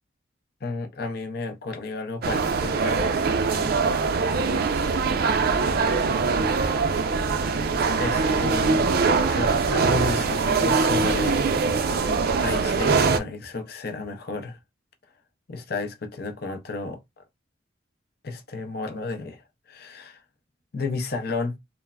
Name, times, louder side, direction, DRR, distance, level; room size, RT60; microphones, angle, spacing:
voice 1, 0.6-3.8 7.2-8.9 9.3-14.6 15.5-17.2 18.2-20.2 20.7-21.6, left 3 dB, 55° left, 0.5 m, -33 dB
sound 1, 2.2-13.2, right 4 dB, 50° right, 0.4 m, -22 dB
3.3 x 2.0 x 2.3 m
head